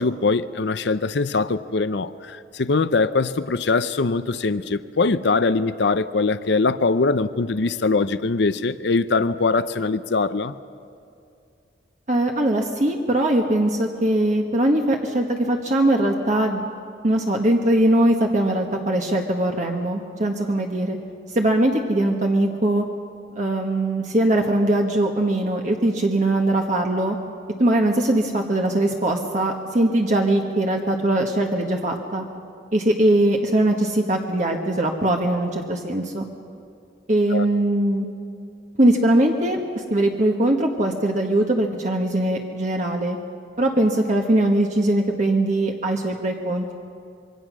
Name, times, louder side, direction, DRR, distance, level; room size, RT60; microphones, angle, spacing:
voice 1, 0.0-10.5 37.3-37.5, left 3 dB, 70° left, 0.6 m, -22 dB
voice 2, 12.1-16.6 17.0-21.0 21.3-22.8 23.4-27.2 27.6-32.2 32.7-36.2 37.1-38.0 38.8-43.2 43.6-46.7, right 1 dB, 40° right, 1.4 m, -21 dB
26.0 x 23.0 x 6.3 m
head